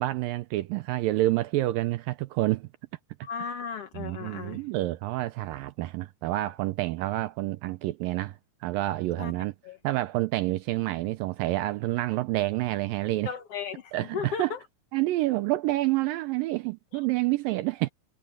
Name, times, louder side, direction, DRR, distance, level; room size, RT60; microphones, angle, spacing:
voice 1, 0.0-2.7 4.0-9.5 9.8-13.3 13.9-14.5 14.9-17.9, right 17 dB, 80° right, 2.0 m, -28 dB
voice 2, 3.2-4.6 9.2-9.3 9.6-9.8 13.2-14.6 16.9-17.0, left 7 dB, 80° left, 1.3 m, -35 dB
omnidirectional pair, 4.6 m